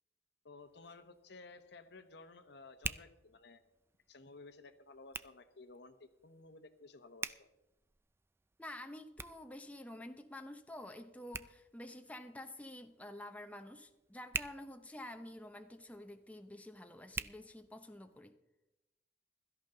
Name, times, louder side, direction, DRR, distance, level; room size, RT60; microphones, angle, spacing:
voice 1, 0.4-3.6 4.1-7.5, left 3 dB, 65° left, 1.0 m, -55 dB
Hands, 0.6-18.2, right 4 dB, 15° right, 0.4 m, -50 dB
voice 2, 8.6-18.4, left 1 dB, 10° left, 0.7 m, -49 dB
16.5 x 13.0 x 3.9 m
head